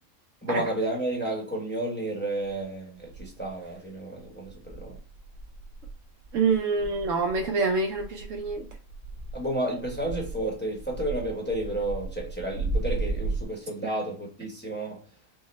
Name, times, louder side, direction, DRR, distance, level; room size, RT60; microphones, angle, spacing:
voice 1, 0.4-5.0 9.3-15.0, right 1 dB, 10° left, 0.9 m, -31 dB
sound 1, 3.1-3.7 4.2-13.4, right 3 dB, 85° right, 1.3 m, -35 dB
voice 2, 6.3-8.6, right 4 dB, 65° right, 0.9 m, -26 dB
5.6 x 2.1 x 3.2 m
omnidirectional pair, 1.5 m